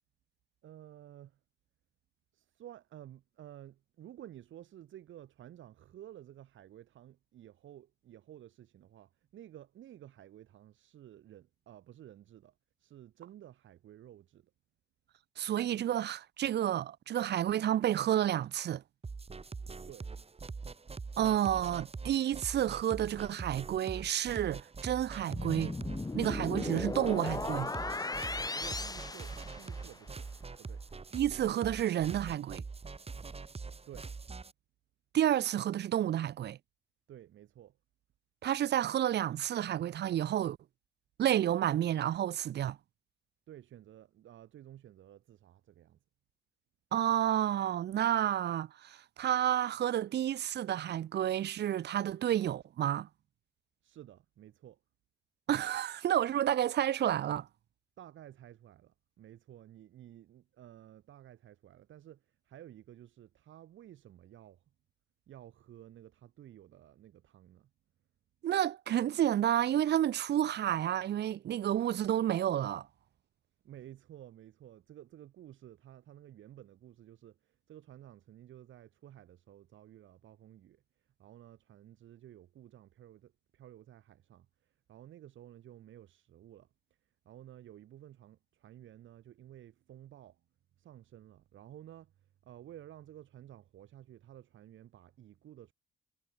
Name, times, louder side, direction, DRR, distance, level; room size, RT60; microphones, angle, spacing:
voice 1, 0.6-1.4 2.3-14.5 19.9-20.1 28.5-30.3 30.5-30.8 33.9-34.1 37.1-37.8 43.5-46.0 53.8-54.8 58.0-64.6 65.3-67.7 73.6-86.7 87.2-90.4 90.8-95.7, right 12 dB, 75° right, 6.4 m, -53 dB
voice 2, 15.4-18.8 21.2-25.7 26.1-27.7 31.1-32.6 35.1-36.6 38.4-40.6 41.2-42.8 46.9-53.1 55.5-57.5 68.4-72.9, right 11 dB, 60° right, 0.7 m, -30 dB
sound 1, 19.0-34.5, right 4 dB, 30° right, 7.4 m, -44 dB
sound 2, 25.3-30.1, left 3 dB, 20° left, 2.3 m, -37 dB
cardioid pair, 90°, 20 cm